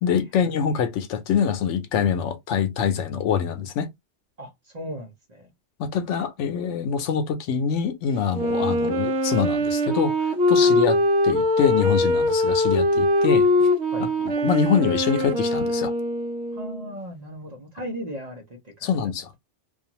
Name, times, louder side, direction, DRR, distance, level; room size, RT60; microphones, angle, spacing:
voice 1, 0.0-3.9 5.8-10.1 10.5-11.0 11.2-13.5 14.2-15.9 18.8-19.4, left 7 dB, 85° left, 0.9 m, -24 dB
voice 2, 4.4-5.5 10.6-10.8 13.9-14.1 16.5-18.9, equal, 40° right, 0.7 m, -37 dB
Wind instrument woodwind instrument, 8.3-16.9, left 1 dB, 70° right, 0.9 m, -22 dB
2.4 x 2.4 x 2.8 m
omnidirectional pair, 1.2 m